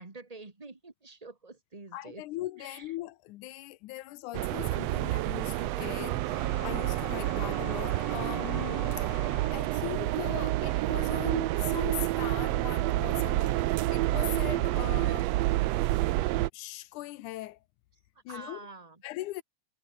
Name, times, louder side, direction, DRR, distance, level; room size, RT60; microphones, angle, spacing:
voice 1, 0.0-2.2 2.6-2.9 18.3-19.0, right 3 dB, 15° right, 1.8 m, -47 dB
voice 2, 1.9-9.1 9.5-15.3 16.5-17.6 18.3-18.7 19.0-19.4, left 16 dB, 90° left, 2.3 m, -40 dB
sound 1, 4.3-16.5, right 17 dB, 75° right, 1.6 m, -29 dB
sound 2, 5.5-6.4 8.8-9.6 10.3-10.4 10.6-11.6 12.6-12.9 13.2-15.3, left 3 dB, 55° left, 8.9 m, -54 dB
sound 3, 6.2-9.7, left 4 dB, 25° left, 1.2 m, -44 dB
omnidirectional pair, 3.4 m